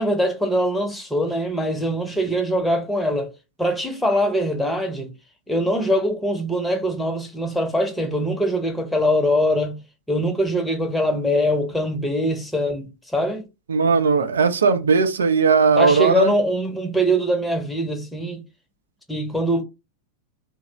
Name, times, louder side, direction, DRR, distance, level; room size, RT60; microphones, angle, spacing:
voice 1, 0.0-3.3 3.6-5.1 5.5-9.8 10.1-13.4 15.8-18.4 19.1-19.6, equal, 5° left, 0.7 m, -22 dB
voice 2, 13.7-16.3, right 4 dB, 70° right, 0.4 m, -18 dB
3.0 x 2.0 x 3.8 m
figure-of-eight pair, 90°, 0 cm